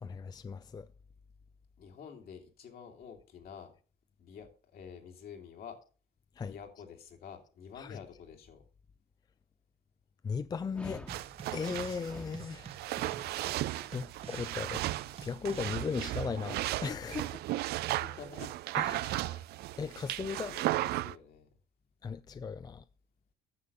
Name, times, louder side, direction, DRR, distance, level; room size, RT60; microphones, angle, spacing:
voice 1, 0.0-0.9 6.4-6.5 7.8-8.0 10.2-11.1 11.5-12.7 13.9-14.8 15.2-17.4 18.8-19.4 19.8-20.5 22.0-22.8, left 5 dB, 25° left, 0.4 m, -37 dB
voice 2, 1.8-3.7 4.2-5.8 6.5-8.6 17.9-18.5 19.7-19.8 20.4-21.5, left 7 dB, 65° left, 2.6 m, -49 dB
Dog, 10.7-16.1, left 1 dB, 5° left, 1.3 m, -52 dB
sound 1, 11.1-12.0 12.3-16.1, right 6 dB, 35° right, 0.9 m, -49 dB
sound 2, 11.1-21.1, right 16 dB, 70° right, 0.4 m, -35 dB
9.8 x 6.9 x 6.7 m
cardioid pair, 110°, 17 cm